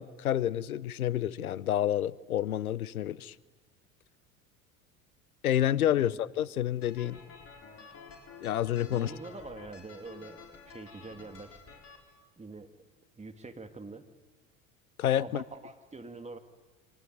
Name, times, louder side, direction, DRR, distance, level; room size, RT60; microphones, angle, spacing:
voice 1, 0.0-3.3 5.4-7.2 8.4-9.1 15.0-15.4, left 11 dB, 90° left, 21 dB, 0.7 m, -29 dB
sound 1, 6.8-12.0, left 5 dB, 35° left, 6.2 m, -50 dB
voice 2, 8.9-11.6 12.4-12.7 13.2-14.1 15.2-16.4, right 3 dB, 15° right, 7 dB, 2.3 m, -45 dB
25.5 x 19.0 x 9.3 m, 1.4 s
hypercardioid pair, 75°, 42 cm